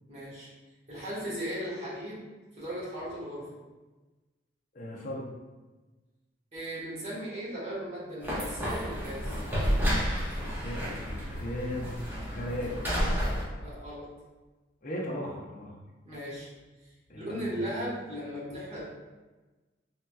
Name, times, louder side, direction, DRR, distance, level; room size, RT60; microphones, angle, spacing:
voice 1, 0.1-0.5 0.9-2.2 2.6-3.5 6.5-9.4 13.6-14.1 16.0-16.5 17.1-18.8, equal, 35° right, -9 dB, 1.3 m, -37 dB
voice 2, 4.7-5.3 10.3-12.8 14.8-15.7 17.1-17.7, left 1 dB, 45° left, -3 dB, 0.6 m, -37 dB
sound 1, 8.2-13.4, equal, 10° right, 0.7 m, -31 dB
3.4 x 2.8 x 2.2 m, 1.2 s
head